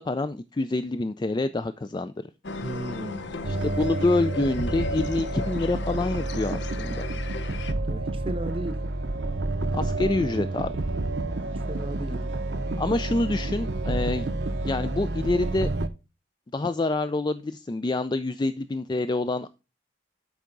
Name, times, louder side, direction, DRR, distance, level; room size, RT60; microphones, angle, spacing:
voice 1, 0.0-2.1 3.5-7.0 9.7-10.7 12.8-14.3 14.6-15.7 16.5-19.5, left 2 dB, 25° left, 0.3 m, -27 dB
sound 1, 2.4-7.7, left 3 dB, 70° left, 0.7 m, -36 dB
voice 2, 2.6-3.4 7.9-8.8 11.4-12.2, right 2 dB, 30° right, 0.8 m, -35 dB
sound 2, 3.4-15.9, right 2 dB, 65° right, 0.7 m, -29 dB
12.0 x 4.7 x 3.9 m
head